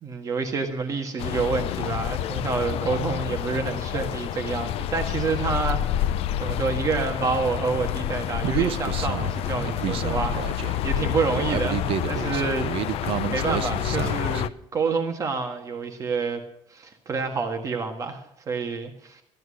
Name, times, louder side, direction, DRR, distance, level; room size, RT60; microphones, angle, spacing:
voice 1, 0.0-12.7 12.9-13.0 13.3-16.4 16.7-19.2, right 4 dB, 30° right, 4 dB, 1.5 m, -28 dB
sound 1, 1.2-14.5, left 11 dB, 55° left, 0.6 m, -28 dB
Human voice, 8.4-14.4, right 11 dB, 50° right, 0.6 m, -30 dB
14.5 x 10.5 x 6.4 m, 0.72 s
cardioid pair, 155°, 12 cm